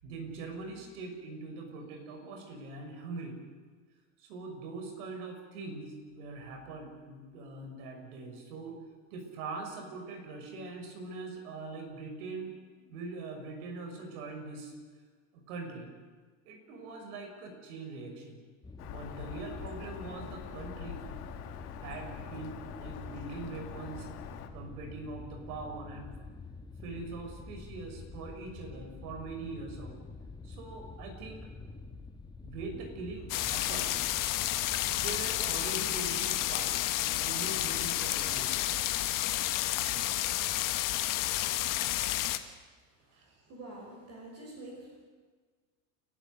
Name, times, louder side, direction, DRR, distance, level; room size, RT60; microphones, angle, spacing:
voice 1, 0.0-3.4 4.2-8.8 9.1-12.5 12.8-14.7 15.3-15.9 16.4-18.4 18.8-21.1 21.8-24.1 24.5-26.1 26.8-30.0 30.4-31.5 32.4-34.0 34.9-38.6 43.1-43.4, right 3 dB, 75° right, 3 dB, 6.3 m, -42 dB
sound 1, 18.6-35.3, left 3 dB, 10° left, 1.1 m, -47 dB
Bird vocalization bird call bird song, 18.8-24.5, left 9 dB, 85° left, 2.4 m, -45 dB
sound 2, 33.3-42.4, left 15 dB, 45° left, 1.4 m, -31 dB
voice 2, 43.0-45.0, right 1 dB, 35° right, -1 dB, 5.8 m, -47 dB
30.0 x 12.5 x 8.0 m, 1.5 s
supercardioid pair, 130°, 45 cm